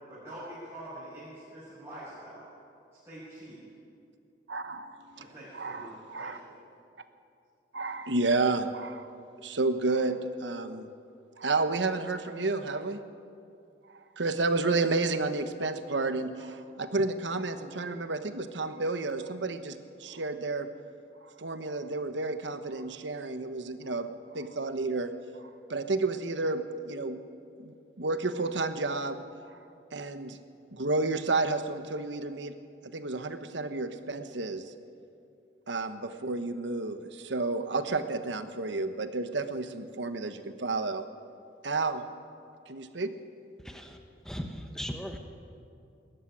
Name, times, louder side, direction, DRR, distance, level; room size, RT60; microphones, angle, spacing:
voice 1, 0.1-2.5 3.0-3.6 5.2-6.4, right 1 dB, 15° right, -11 dB, 5.9 m, -45 dB
voice 2, 4.5-5.3 5.5-6.4 7.7-9.1 9.4-10.9 11.4-13.0 14.2-20.7 21.4-24.1 24.3-25.1 25.7-27.2 27.6-29.2 29.9-30.4 30.7-32.5 32.9-34.6 35.7-41.0 41.6-42.0 42.7-43.2, right 3 dB, 80° right, 9 dB, 1.1 m, -31 dB
voice 3, 43.6-44.0 44.2-45.2, equal, 5° left, 4 dB, 1.1 m, -38 dB
19.5 x 14.0 x 9.9 m, 2.6 s
head